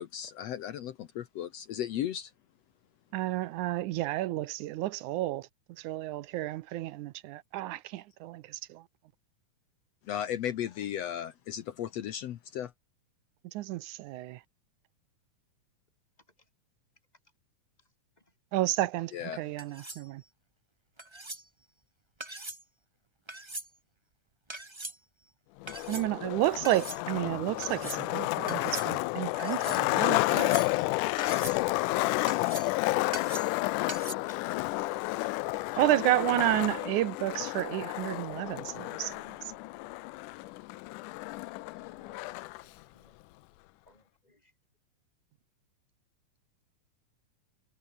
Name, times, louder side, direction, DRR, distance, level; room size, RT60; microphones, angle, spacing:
voice 1, 0.0-2.3 10.1-12.7 19.1-19.4, left 10 dB, 65° left, 1.9 m, -35 dB
voice 2, 3.1-5.5 5.8-8.8 13.5-14.4 18.5-20.2 25.9-30.6 35.8-39.2, right 16 dB, 80° right, 2.1 m, -31 dB
sound 1, 19.6-20.1 21.0-21.4 22.2-22.6 23.3-23.7 24.5-25.0 25.7-26.0 26.6-27.0 27.6-28.0 28.5-28.9 29.4-29.8 30.3-30.9 31.2-31.6 32.3-32.8 33.1-33.6 33.9-34.1, right 2 dB, 10° right, 1.5 m, -41 dB
Skateboard, 25.6-42.6, left 21 dB, 85° left, 2.1 m, -31 dB
voice 3, 35.5-35.9 36.3-36.4 41.5-42.4 42.9-43.1 43.9-44.4, left 1 dB, 15° left, 3.0 m, -55 dB
omnidirectional pair, 3.6 m